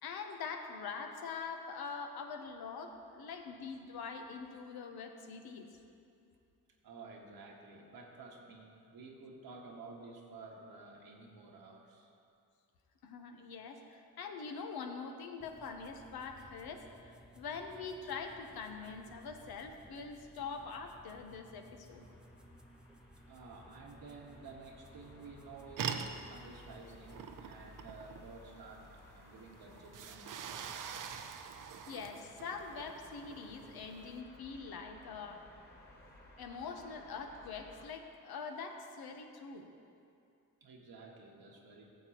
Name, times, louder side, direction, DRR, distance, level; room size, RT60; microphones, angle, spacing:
voice 1, 0.0-5.7 13.0-22.1 31.9-35.4 36.4-39.7, left 5 dB, 80° left, 4 dB, 0.9 m, -44 dB
voice 2, 6.8-12.1 23.3-30.9 31.2-31.5 40.6-41.9, right 3 dB, 75° right, 0 dB, 1.5 m, -52 dB
sound 1, 15.4-27.4, equal, ahead, 0.7 m, -59 dB
sound 2, 21.9-37.9, left 1 dB, 25° left, 1.8 m, -59 dB
sound 3, 25.8-34.2, right 7 dB, 60° right, 0.6 m, -45 dB
14.5 x 7.3 x 3.0 m, 2.5 s
cardioid pair, 65°, 37 cm